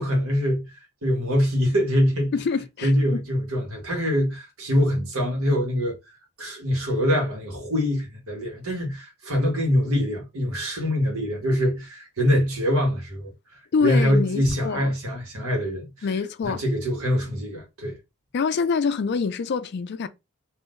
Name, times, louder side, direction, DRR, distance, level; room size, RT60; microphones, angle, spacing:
voice 1, 0.0-2.3 2.8-16.1 16.4-18.0, equal, 75° right, 1.3 m, -24 dB
voice 2, 2.3-3.2 13.7-14.9 16.0-16.6 18.3-20.1, left 5 dB, 50° left, 0.3 m, -25 dB
3.7 x 2.6 x 2.5 m
head